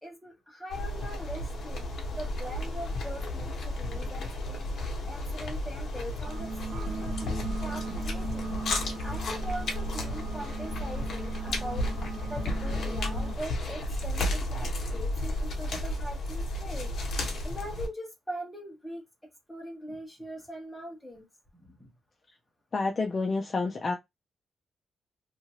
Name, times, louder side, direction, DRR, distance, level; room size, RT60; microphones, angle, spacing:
voice 1, 0.0-4.6 5.1-8.6 9.0-11.9 12.3-16.9 17.4-19.0 19.5-21.3 21.5-21.9, equal, ahead, 1.0 m, -41 dB
sound 1, 0.7-17.9, left 1 dB, 50° left, 0.9 m, -33 dB
sound 2, 6.2-13.4, right 5 dB, 60° right, 0.3 m, -39 dB
voice 2, 22.7-23.9, left 3 dB, 30° left, 0.3 m, -29 dB
2.8 x 2.5 x 2.8 m
wide cardioid pair, 175°, 0 cm